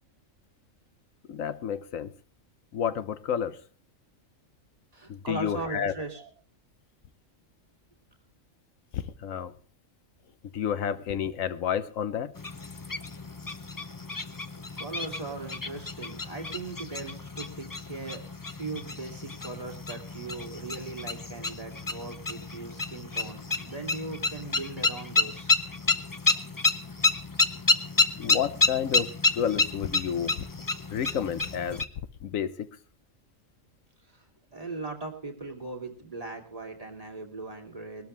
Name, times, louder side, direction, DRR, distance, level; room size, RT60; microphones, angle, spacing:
voice 1, 1.3-2.1 2.7-3.6 5.1-5.9 8.9-9.5 10.5-12.3 28.2-30.5 30.9-31.8 32.2-32.8, left 8 dB, 75° left, 1.2 m, -30 dB
voice 2, 4.9-6.3 14.8-18.2 18.5-25.6 34.5-38.1, right 3 dB, 25° right, 3.0 m, -39 dB
sound 1, 12.4-31.9, left 3 dB, 20° left, 0.5 m, -30 dB
21.0 x 13.0 x 3.3 m
omnidirectional pair, 1.4 m